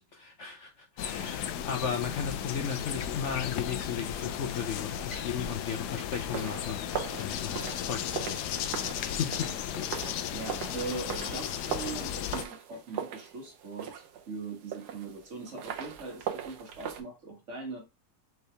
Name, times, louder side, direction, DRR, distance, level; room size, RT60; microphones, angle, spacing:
voice 1, 0.0-8.7 9.0-9.5 9.8-9.9, left 7 dB, 65° left, 0.8 m, -35 dB
sound 1, 1.0-12.4, left 10 dB, 85° left, 1.1 m, -35 dB
sound 2, 6.3-17.0, right 9 dB, 85° right, 1.3 m, -40 dB
voice 2, 10.3-17.8, right 3 dB, 50° right, 1.6 m, -41 dB
4.7 x 3.3 x 3.3 m
omnidirectional pair, 1.7 m